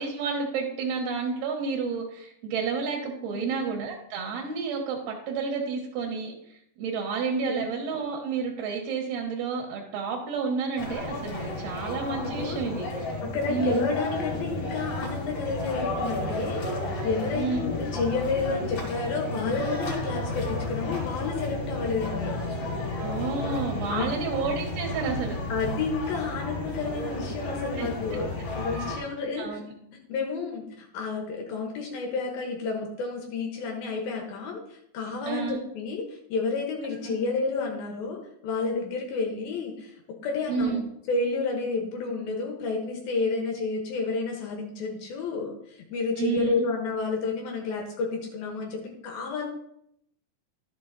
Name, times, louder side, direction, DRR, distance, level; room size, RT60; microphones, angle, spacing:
voice 1, 0.0-13.2 13.5-13.9 17.3-17.7 23.0-25.4 27.8-27.9 29.4-29.7 35.2-35.6 37.1-37.2 40.5-40.8 46.2-46.5, right 5 dB, 80° right, 0 dB, 3.3 m, -30 dB
voice 2, 7.5-7.8 12.1-12.7 13.3-22.4 23.9-24.2 25.5-29.6 30.1-38.2 38.4-40.0 40.2-40.8 41.1-49.5, left 4 dB, 75° left, 1 dB, 3.0 m, -30 dB
sound 1, 10.8-29.0, left 2 dB, 40° left, 3.3 m, -32 dB
12.0 x 7.0 x 4.0 m, 0.76 s
omnidirectional pair, 4.4 m